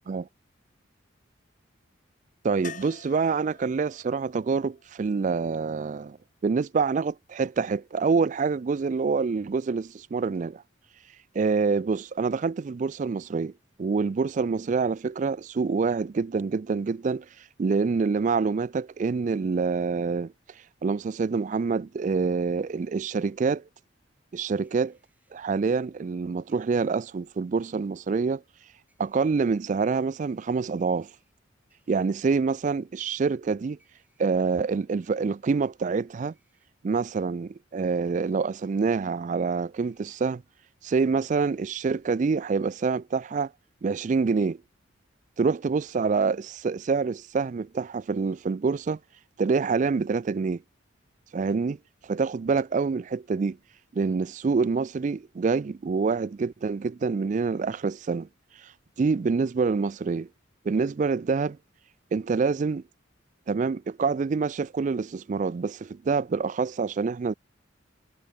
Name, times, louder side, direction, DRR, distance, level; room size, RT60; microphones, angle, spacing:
voice 1, 2.4-6.2 6.4-10.6 11.3-13.5 13.8-17.3 17.6-20.3 20.8-23.6 24.3-25.0 25.3-28.4 29.0-31.1 31.9-33.8 34.2-36.3 36.8-40.4 40.8-43.5 43.8-44.6 45.4-49.0 49.4-50.6 51.3-51.8 52.0-53.6 53.9-58.3 58.6-58.7 59.0-60.3 60.6-61.6 62.1-62.8 63.5-67.3, right 4 dB, 40° right, 0.3 m, -26 dB
sound 1, 2.6-6.5 9.2-9.3 9.5-9.6, left 7 dB, 40° left, 1.6 m, -48 dB
sound 2, 22.4-22.9 24.6-25.3 26.5-27.0 28.9-29.3 30.0-31.3 31.7-32.3 33.8-34.3 35.0-35.1 36.3-36.7 38.0-38.5 39.8-40.2, right 2 dB, 10° right, 8.0 m, -70 dB
head